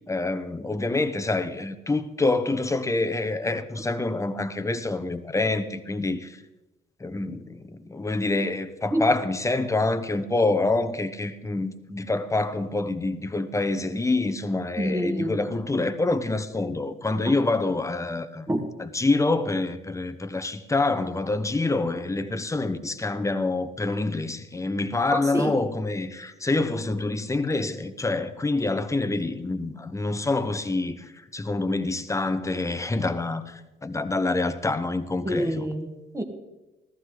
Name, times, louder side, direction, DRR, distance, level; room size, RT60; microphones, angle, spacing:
voice 1, 0.0-6.4 7.0-18.5 18.8-35.6, left 2 dB, 15° left, 1.0 m, -26 dB
voice 2, 14.8-15.4 17.3-17.4 18.5-18.6 25.1-25.6 35.2-36.2, equal, 15° right, 1.9 m, -27 dB
15.0 x 14.0 x 3.9 m
cardioid pair, 90°, 20 cm